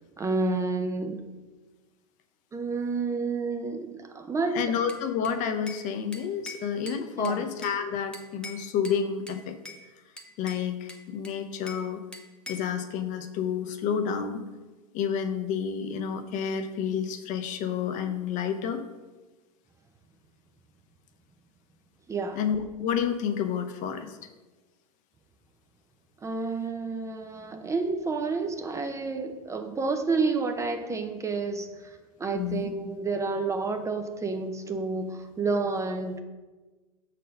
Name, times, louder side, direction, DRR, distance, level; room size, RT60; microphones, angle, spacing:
voice 1, 0.2-1.2 2.5-4.6 7.2-7.4 22.1-22.4 26.2-36.2, right 4 dB, 15° right, 6 dB, 0.6 m, -30 dB
voice 2, 4.5-9.6 10.4-12.0 12.5-14.4 14.9-18.8 22.4-24.2 32.3-32.7, left 7 dB, 40° left, 8 dB, 0.8 m, -30 dB
Bell / Glass, 4.9-5.9 6.1-7.8 8.1-9.0 9.3-9.8 10.2-11.9 12.1-12.7, left 2 dB, 5° left, 0.9 m, -44 dB
6.4 x 4.2 x 6.4 m, 1.2 s
figure-of-eight pair, 90°, 19 cm